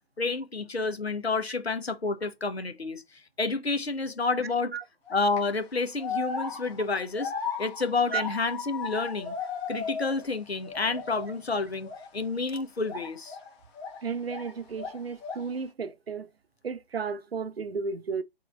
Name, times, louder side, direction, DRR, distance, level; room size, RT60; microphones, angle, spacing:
voice 1, 0.2-3.0 3.4-4.8 5.1-7.3 7.6-9.3 9.7-13.4, left 3 dB, 80° left, 1.1 m, -29 dB
sound 1, 5.1-5.4 6.0-10.4 10.6-11.4 11.8-12.1 12.8-14.5 14.8-15.6, left 5 dB, 15° left, 1.1 m, -36 dB
voice 2, 14.0-16.3 16.6-18.2, right 5 dB, 70° right, 0.7 m, -33 dB
4.1 x 3.5 x 2.4 m
figure-of-eight pair, 140°, 31 cm